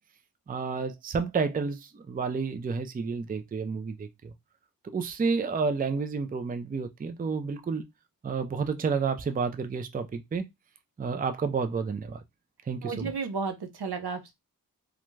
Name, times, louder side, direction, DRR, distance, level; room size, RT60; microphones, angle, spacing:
voice 1, 0.5-4.3 4.9-7.8 8.2-10.5 11.0-12.2 12.7-13.1, right 5 dB, 25° right, 0.3 m, -30 dB
voice 2, 12.8-14.3, right 4 dB, 80° right, 0.7 m, -33 dB
2.5 x 2.2 x 3.1 m
wide cardioid pair, 60°, 38 cm